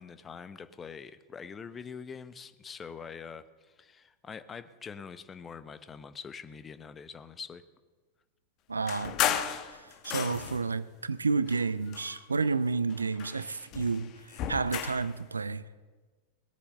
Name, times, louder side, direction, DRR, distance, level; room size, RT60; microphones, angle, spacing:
voice 1, 0.0-7.6, left 6 dB, 20° left, 0.8 m, -44 dB
voice 2, 8.7-15.6, right 4 dB, 75° right, 0.5 m, -31 dB
sound 1, 8.9-10.7 11.4-12.6 12.9-15.1, left 10 dB, 40° left, 1.0 m, -34 dB
20.0 x 8.4 x 6.7 m
figure-of-eight pair, 90°, 0 cm